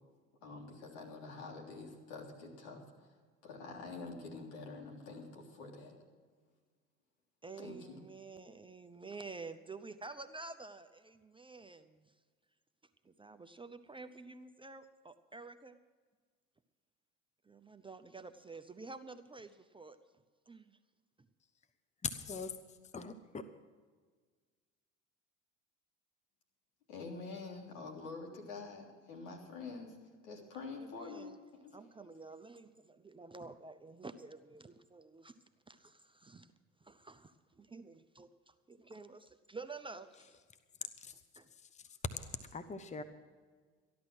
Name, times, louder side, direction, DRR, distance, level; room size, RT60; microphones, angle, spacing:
voice 1, 0.4-3.1 3.4-5.9 7.6-8.0 26.9-29.9 30.2-32.1, left 3 dB, 75° left, 0 dB, 3.5 m, -47 dB
voice 2, 7.4-12.1 13.0-15.8 17.4-20.0 20.5-20.8 21.2-21.3 30.7-31.4 31.7-35.4 35.7-36.5 36.8-40.4 40.8-41.5, right 3 dB, 15° right, 9 dB, 0.7 m, -50 dB
voice 3, 22.0-22.5 22.9-23.1 41.0-41.1 42.5-43.0, left 5 dB, 20° left, 10 dB, 1.0 m, -40 dB
14.5 x 11.0 x 6.2 m, 1.5 s
hypercardioid pair, 75°, 38 cm